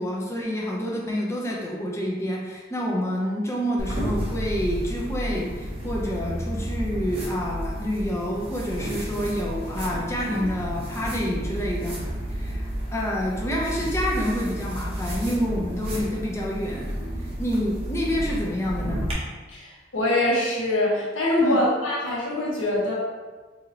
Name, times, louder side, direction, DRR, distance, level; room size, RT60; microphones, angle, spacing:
voice 1, 0.0-12.0 12.3-16.9 17.4-19.1 21.4-21.6, equal, 15° left, -3 dB, 0.5 m, -28 dB
sound 1, 3.8-19.1, equal, 30° right, 0.8 m, -31 dB
voice 2, 19.5-22.9, left 1 dB, 80° left, -5 dB, 1.1 m, -24 dB
2.8 x 2.7 x 3.9 m, 1.3 s
head